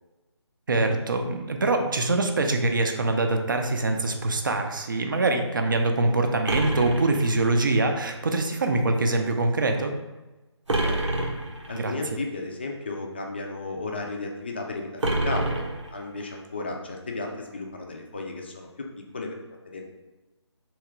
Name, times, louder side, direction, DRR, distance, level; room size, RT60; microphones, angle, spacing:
voice 1, 0.7-9.9 11.7-11.9, right 2 dB, 45° right, 4 dB, 0.5 m, -24 dB
sound 1, 6.5-7.8 10.7-11.8 15.0-16.3, right 2 dB, 85° right, 0.9 m, -28 dB
voice 2, 10.7-11.3 11.7-15.7 15.9-19.3 19.7-19.8, left 3 dB, 20° left, 2 dB, 0.4 m, -34 dB
3.5 x 2.9 x 4.6 m, 1.1 s
figure-of-eight pair, 160°, 15 cm